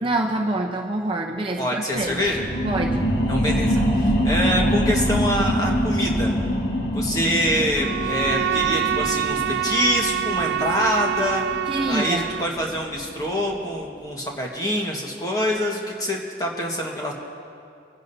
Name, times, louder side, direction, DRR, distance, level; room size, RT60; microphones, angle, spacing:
voice 1, 0.0-2.2 2.6-3.1 11.7-12.3, right 2 dB, 25° right, 0 dB, 0.8 m, -26 dB
voice 2, 1.6-2.4 3.3-6.3 6.9-11.4 11.9-17.1, equal, 20° left, -1 dB, 1.5 m, -25 dB
sound 1, 2.0-13.1 13.5-13.6, equal, 60° left, 1.8 m, -25 dB
Bowed string instrument, 7.8-12.6, right 10 dB, 60° right, 0.3 m, -26 dB
24.0 x 11.0 x 2.8 m, 2.4 s
head